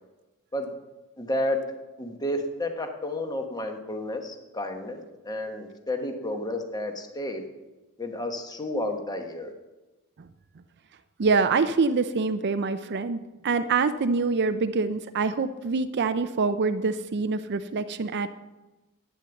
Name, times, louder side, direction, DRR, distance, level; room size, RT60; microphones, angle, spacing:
voice 1, 1.2-1.6 2.0-7.5 8.0-9.5, left 1 dB, 20° left, 5 dB, 1.1 m, -31 dB
voice 2, 11.2-18.3, right 4 dB, 50° right, 10 dB, 0.5 m, -25 dB
11.5 x 9.2 x 7.0 m, 1.1 s
head